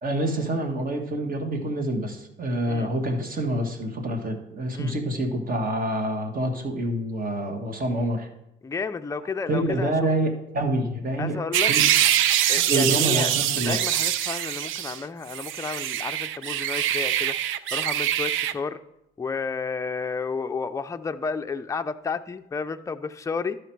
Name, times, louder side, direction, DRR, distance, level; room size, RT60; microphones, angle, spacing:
voice 1, 0.0-8.3 9.5-11.4 11.7-11.9 12.6-13.8, right 1 dB, 45° right, 5 dB, 1.6 m, -27 dB
voice 2, 8.6-10.1 11.2-11.7 12.5-18.8 19.2-23.6, left 5 dB, 15° left, 8 dB, 0.4 m, -32 dB
sound 1, 11.5-15.0 15.3-18.5, right 11 dB, 85° right, 0.5 m, -24 dB
12.5 x 5.0 x 4.6 m, 0.83 s
cardioid pair, 90°, 20 cm